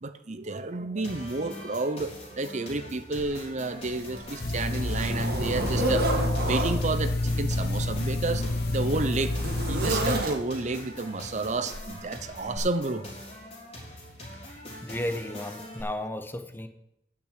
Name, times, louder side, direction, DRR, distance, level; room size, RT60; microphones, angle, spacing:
voice 1, 0.0-6.1 6.4-9.4 9.7-13.3, right 3 dB, 40° right, 11 dB, 0.7 m, -31 dB
sound 1, 1.0-15.8, left 1 dB, 35° left, 3.6 m, -43 dB
Zipper (clothing), 3.2-3.3 3.9-6.8 7.8-10.7 11.7-11.9 12.5-12.6, right 1 dB, 60° right, 2.2 m, -31 dB
sound 2, 4.4-10.2, left 2 dB, 60° left, 0.8 m, -28 dB
voice 2, 14.8-16.7, left 1 dB, 10° left, 8 dB, 0.8 m, -34 dB
9.9 x 6.0 x 8.5 m, 0.82 s
head